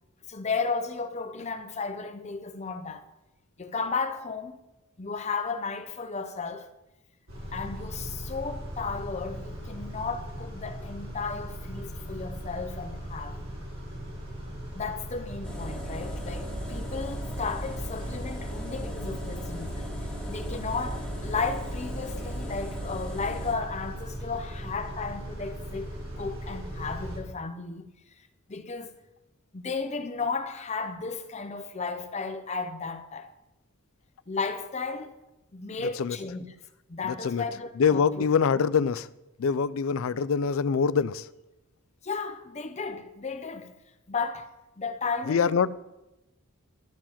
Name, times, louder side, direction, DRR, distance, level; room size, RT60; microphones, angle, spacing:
voice 1, 0.3-3.0 3.6-4.6 5.0-6.7 7.5-13.4 14.7-19.9 20.3-27.9 28.5-28.9 29.5-33.3 34.3-35.1 35.5-36.6 36.9-38.3 42.0-43.7 44.1-44.5 44.8-45.6, left 4 dB, 30° left, 0.7 m, -34 dB
Car / Idling / Accelerating revving vroom, 7.3-27.2, equal, 75° right, 4.1 m, -38 dB
sound 1, 15.4-23.5, equal, 5° left, 1.9 m, -37 dB
voice 2, 37.8-39.1 39.4-41.2 45.3-45.7, left 6 dB, 65° left, 0.4 m, -24 dB
11.5 x 4.6 x 7.3 m
head